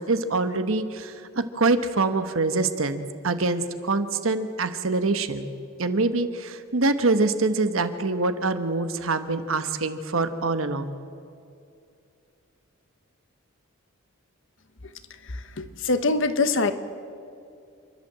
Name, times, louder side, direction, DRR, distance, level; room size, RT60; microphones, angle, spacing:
voice 1, 0.0-5.5 5.8-10.9, right 3 dB, 70° right, 10 dB, 1.2 m, -25 dB
voice 2, 15.2-16.7, left 3 dB, 60° left, 10 dB, 1.2 m, -24 dB
29.0 x 12.0 x 7.6 m, 2.5 s
head